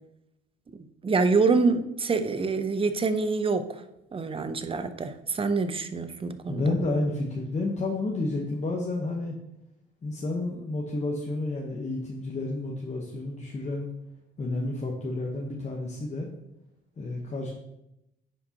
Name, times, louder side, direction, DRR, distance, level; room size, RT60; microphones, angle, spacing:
voice 1, 0.7-3.8 4.1-6.6, right 4 dB, 25° right, 10 dB, 0.6 m, -26 dB
voice 2, 6.5-9.3 10.0-13.9 14.4-16.3 17.0-17.5, left 2 dB, 35° left, -1 dB, 1.1 m, -30 dB
9.9 x 5.1 x 2.9 m, 0.86 s
cardioid pair, 90°, 20 cm